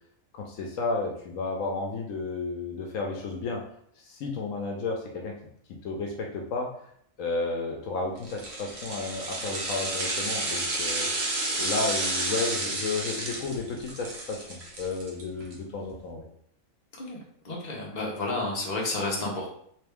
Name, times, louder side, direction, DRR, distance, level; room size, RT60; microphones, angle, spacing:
voice 1, 0.3-3.6 4.0-5.3 5.8-6.7 7.2-11.1 11.6-16.2, left 3 dB, 75° left, 1 dB, 1.0 m, -32 dB
sound 1, 8.2-15.5 15.9-16.0, right 2 dB, 55° right, 1.2 m, -31 dB
voice 2, 17.4-19.5, left 2 dB, 35° left, -3 dB, 1.0 m, -31 dB
3.4 x 3.2 x 3.5 m, 0.67 s
omnidirectional pair, 1.4 m